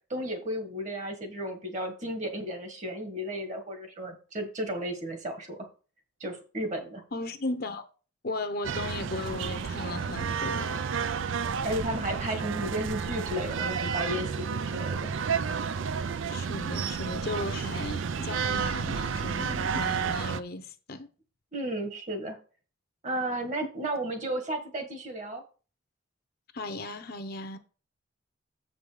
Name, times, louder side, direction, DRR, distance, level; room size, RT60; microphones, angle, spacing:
voice 1, 0.1-5.7 6.2-7.0 11.6-15.1 21.5-22.4 23.0-25.4, right 1 dB, 35° right, 1.6 m, -33 dB
voice 2, 7.1-7.8 8.2-10.9 16.3-21.1 26.5-27.6, left 2 dB, 50° left, 0.8 m, -36 dB
sound 1, 8.6-20.4, right 6 dB, 70° right, 0.4 m, -31 dB
7.5 x 5.4 x 5.0 m
head